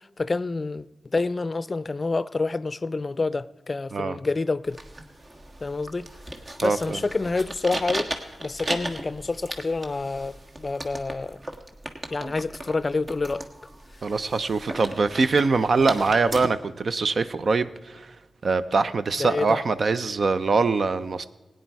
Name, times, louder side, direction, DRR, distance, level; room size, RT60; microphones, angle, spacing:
voice 1, 0.2-4.8 5.6-6.1 6.6-8.1 8.4-11.4 12.1-13.5 19.2-19.6, left 3 dB, 45° left, 0.4 m, -28 dB
sound 1, 4.6-16.5, right 1 dB, 50° right, 1.5 m, -36 dB
voice 2, 6.6-7.0 14.0-18.1 18.4-21.3, right 4 dB, 65° right, 0.6 m, -23 dB
16.5 x 9.4 x 4.7 m
cardioid pair, 45°, 0 cm